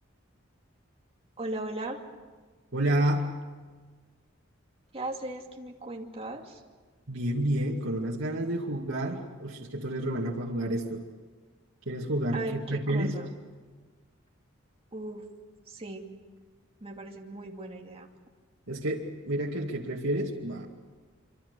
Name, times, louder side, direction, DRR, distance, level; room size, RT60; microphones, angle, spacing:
voice 1, 1.4-2.0 4.9-6.6 12.3-13.3 14.9-15.2 15.7-16.1 16.8-18.1, right 2 dB, 30° right, 1 dB, 2.5 m, -37 dB
voice 2, 2.7-3.3 7.1-11.0 11.9-13.1 18.7-20.7, right 1 dB, 80° right, -2 dB, 2.3 m, -30 dB
25.5 x 25.5 x 6.8 m, 1.4 s
head